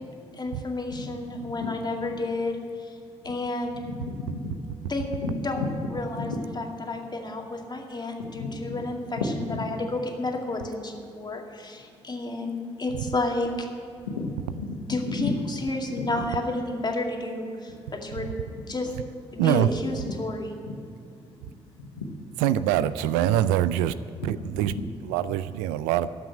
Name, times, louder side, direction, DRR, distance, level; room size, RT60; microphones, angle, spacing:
voice 1, 0.3-2.9 3.2-3.8 4.9-5.1 5.4-13.7 14.9-18.3 18.7-19.0 19.3-20.5, left 2 dB, 30° left, 2 dB, 2.2 m, -31 dB
voice 2, 1.3-1.7 4.0-4.6 5.2-5.7 6.1-6.3 8.2-8.8 9.5-9.6 14.1-14.7 15.1-15.3 16.0-16.1 17.8-17.9 20.7-20.8 21.8-22.1 24.2-24.3 24.7-24.9, left 4 dB, 90° left, 2 dB, 1.1 m, -33 dB
voice 3, 19.4-19.7 22.4-23.9 24.2-24.7 25.0-26.1, right 12 dB, 80° right, 15 dB, 0.4 m, -24 dB
13.5 x 6.2 x 9.9 m, 2.3 s
hypercardioid pair, 45°, 14 cm